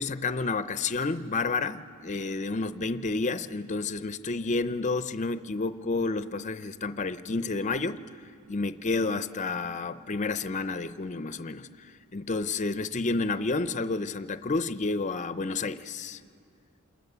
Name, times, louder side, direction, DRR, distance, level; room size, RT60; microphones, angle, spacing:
voice 1, 0.0-8.0 8.5-11.7 12.1-16.2, left 3 dB, 35° left, 12 dB, 0.5 m, -30 dB
27.5 x 19.0 x 6.9 m, 2.5 s
head